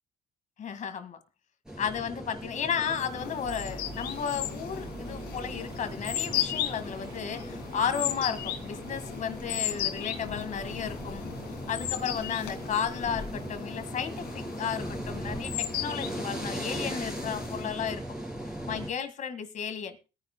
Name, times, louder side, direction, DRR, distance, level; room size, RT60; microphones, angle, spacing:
voice 1, 0.6-1.2 1.8-11.3 11.7-18.0 18.7-20.0, left 7 dB, 50° left, 10 dB, 1.9 m, -33 dB
sound 1, 1.7-18.9, equal, 5° right, 3.4 m, -39 dB
sound 2, 2.9-17.9, left 11 dB, 90° left, 2.4 m, -37 dB
sound 3, 3.4-13.5, right 3 dB, 85° right, 4.4 m, -50 dB
21.5 x 10.0 x 2.2 m, 0.30 s
cardioid pair, 110°, 17 cm